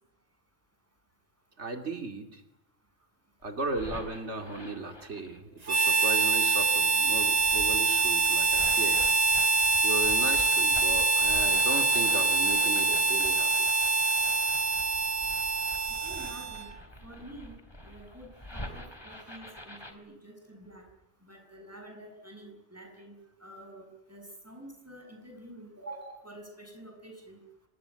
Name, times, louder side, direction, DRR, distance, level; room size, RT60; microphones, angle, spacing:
voice 1, 1.6-2.4 3.4-9.0 9.8-13.7, right 2 dB, 90° right, 5 dB, 2.8 m, -36 dB
sound 1, 3.4-5.4 6.1-19.9, left 1 dB, 20° left, 3.5 m, -46 dB
Harmonica, 5.7-16.7, right 3 dB, 35° right, 1.5 m, -25 dB
voice 2, 16.0-16.7 17.0-17.6 17.8-20.8 21.2-23.2 23.4-27.4, right 1 dB, 15° right, 3 dB, 7.5 m, -48 dB
26.0 x 20.5 x 9.8 m, 0.88 s
omnidirectional pair, 1.1 m